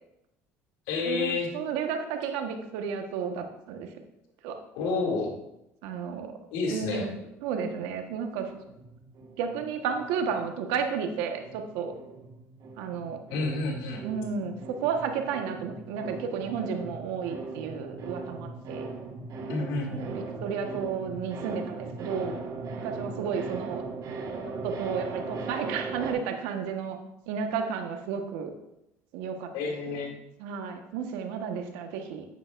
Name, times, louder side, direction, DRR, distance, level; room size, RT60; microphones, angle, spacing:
voice 1, 0.9-1.5 4.7-5.3 6.5-7.0 13.3-14.0 19.5-20.3 29.5-30.2, left 3 dB, 80° left, 0 dB, 2.4 m, -29 dB
voice 2, 1.5-3.9 4.4-4.6 5.8-6.3 6.7-7.1 7.4-8.5 9.4-11.9 12.8-13.2 14.0-18.9 19.9-22.4 22.8-23.8 24.6-27.0 27.3-28.5 29.1-30.1 30.4-32.2, right 6 dB, 80° right, 5 dB, 1.2 m, -32 dB
sound 1, 8.4-11.0 11.2-26.1, right 3 dB, 55° right, 1.5 m, -39 dB
9.7 x 9.2 x 2.5 m, 0.85 s
supercardioid pair, 80°, 7 cm